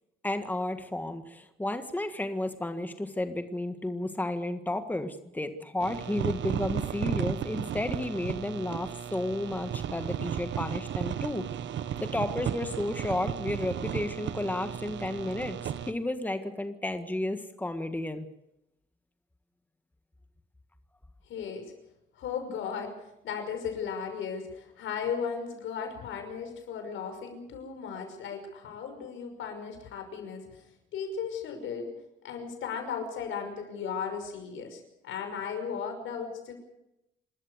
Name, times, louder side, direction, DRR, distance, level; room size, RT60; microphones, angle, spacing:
voice 1, 0.2-11.4 12.0-18.3, left 1 dB, 10° left, 8 dB, 1.7 m, -32 dB
sound 1, 5.8-15.9, right 9 dB, 70° right, 1.3 m, -34 dB
voice 2, 21.3-21.7 22.2-22.9 23.2-30.6 30.9-31.9 32.2-36.5, left 6 dB, 80° left, 6 dB, 5.8 m, -36 dB
27.0 x 13.5 x 8.1 m, 0.88 s
cardioid pair, 90°, 20 cm